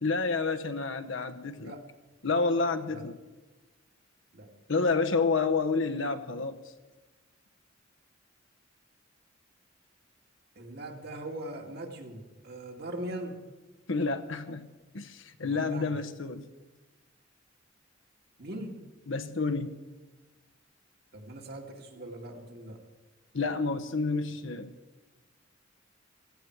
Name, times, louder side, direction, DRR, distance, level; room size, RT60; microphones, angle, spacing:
voice 1, 0.0-1.7 2.2-3.2 4.7-6.6 13.9-16.5 19.1-19.8 23.3-24.7, left 4 dB, 70° left, 8 dB, 1.0 m, -29 dB
voice 2, 10.6-13.4 15.4-15.9 18.4-18.7 21.1-22.8, right 1 dB, 55° right, 2 dB, 2.2 m, -40 dB
16.0 x 15.5 x 4.7 m, 1.2 s
head